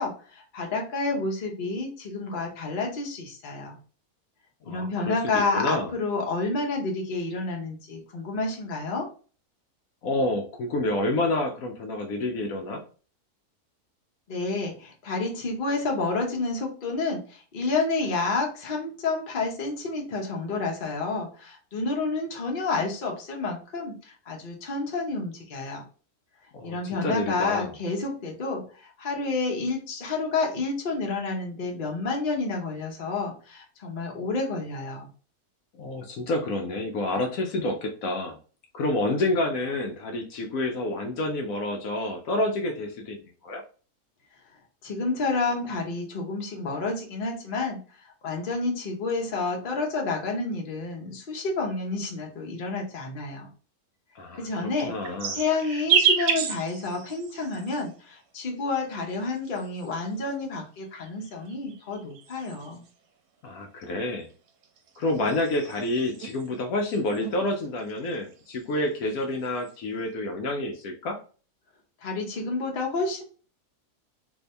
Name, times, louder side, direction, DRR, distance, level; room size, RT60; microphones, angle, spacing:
voice 1, 0.0-3.8 4.7-9.1 14.3-25.8 26.6-35.1 44.8-53.5 54.4-62.8 72.0-73.2, left 3 dB, 45° left, 0 dB, 0.8 m, -29 dB
voice 2, 4.7-5.9 10.0-12.8 26.5-27.7 35.7-38.4 38.7-43.2 43.4-43.6 54.2-54.5 54.8-55.4 63.4-64.3 65.0-71.2, left 2 dB, 70° left, 3 dB, 0.9 m, -28 dB
sound 1, 54.5-57.9 58.8-60.2 61.0-62.9 64.3-66.5 66.9-67.4 67.7-68.8 69.1-69.7, right 7 dB, 80° right, 1.1 m, -30 dB
2.7 x 2.7 x 3.2 m, 0.39 s
omnidirectional pair, 1.6 m